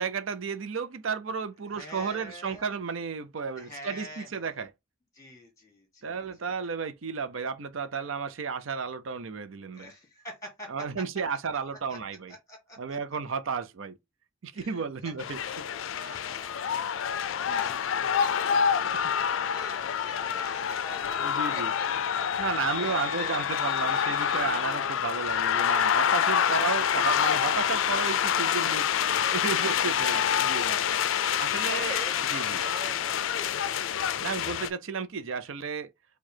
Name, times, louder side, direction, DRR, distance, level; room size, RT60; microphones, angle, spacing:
voice 1, 0.0-4.7 6.0-9.9 10.7-12.3 12.8-14.0 14.4-15.7 16.0-16.2 17.5-17.6 18.8-19.1 21.2-21.7 22.4-30.8 31.4-32.0 32.3-32.6 34.2-35.9, right 5 dB, 70° right, 0.6 m, -33 dB
voice 2, 1.7-2.7 3.6-4.6 5.1-6.1 9.7-10.7 11.9-12.0 12.5-12.8 14.5-14.8 15.4-18.8 19.3-22.9 23.2-23.4 31.0-32.2 32.5-33.8, equal, 15° left, 1.6 m, -46 dB
sound 1, 15.2-34.7, left 8 dB, 70° left, 0.4 m, -27 dB
4.7 x 2.3 x 4.4 m
head